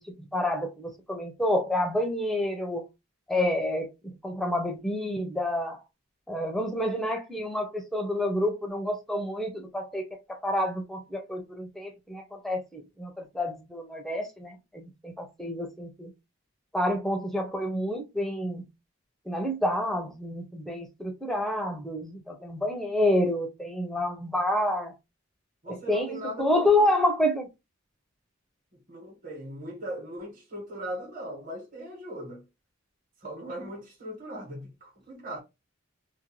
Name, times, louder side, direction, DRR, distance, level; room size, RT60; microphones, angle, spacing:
voice 1, 0.0-2.8 3.3-5.8 6.3-10.0 10.3-16.1 16.7-18.6 19.3-24.9 25.7-27.5, left 1 dB, ahead, 0.4 m, -28 dB
voice 2, 25.6-26.9 28.7-32.4 33.2-35.4, right 1 dB, 40° right, 1.1 m, -39 dB
2.5 x 2.1 x 2.9 m
head